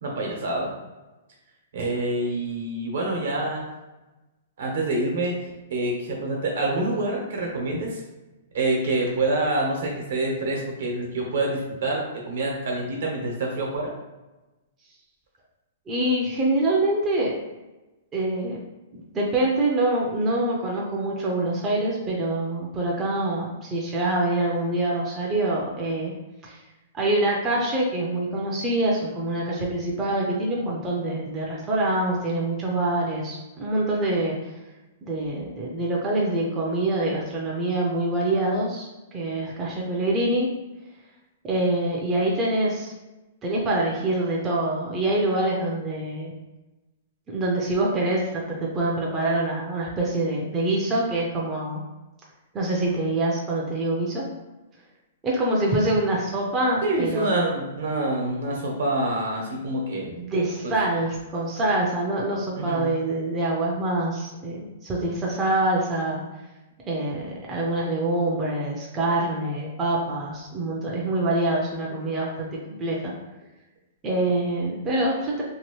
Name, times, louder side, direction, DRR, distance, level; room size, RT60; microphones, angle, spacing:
voice 1, 0.0-0.7 1.7-3.7 4.6-5.4 5.7-8.0 8.5-13.9 56.8-60.1 60.6-60.7 62.6-62.9, right 2 dB, 70° right, -1 dB, 1.0 m, -26 dB
voice 2, 15.9-17.3 18.1-18.6 18.9-26.1 26.4-26.6 26.9-34.4 35.0-40.5 41.4-42.9 43.4-46.3 47.3-51.8 52.5-54.3 55.2-57.3 60.2-66.2 66.9-73.1 74.0-75.4, right 2 dB, 20° right, -3 dB, 0.5 m, -25 dB
2.8 x 2.6 x 3.0 m, 1.1 s
hypercardioid pair, 160°, 0 cm